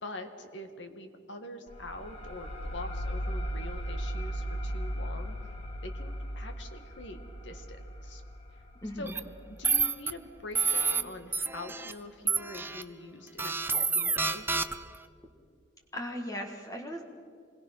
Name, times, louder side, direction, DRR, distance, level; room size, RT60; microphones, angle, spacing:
voice 1, 0.0-5.4 5.8-8.2 9.0-9.1 9.6-14.5, left 2 dB, 75° left, 6 dB, 2.0 m, -44 dB
sound 1, 1.7-10.9, equal, 35° left, 3.0 m, -37 dB
voice 2, 8.8-9.1 15.9-17.0, equal, 20° left, 2 dB, 1.6 m, -37 dB
sound 2, 9.1-9.2 9.6-10.1 10.5-11.0 11.3-11.9 12.3-12.8 13.4-15.0, right 4 dB, 10° right, 0.7 m, -28 dB
27.0 x 21.5 x 5.8 m, 2.3 s
head